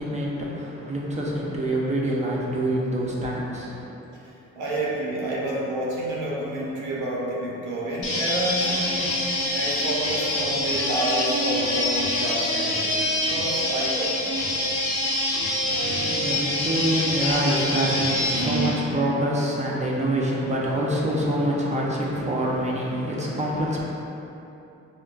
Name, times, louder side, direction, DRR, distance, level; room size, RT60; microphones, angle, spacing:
voice 1, 0.0-3.9 15.7-23.9, right 1 dB, 25° right, -4 dB, 0.5 m, -26 dB
voice 2, 4.2-14.3, right 1 dB, 90° right, -5 dB, 0.8 m, -29 dB
sound 1, 8.0-18.7, left 1 dB, 75° left, 0.9 m, -25 dB
4.3 x 2.1 x 2.4 m, 2.9 s
cardioid pair, 90°, 30 cm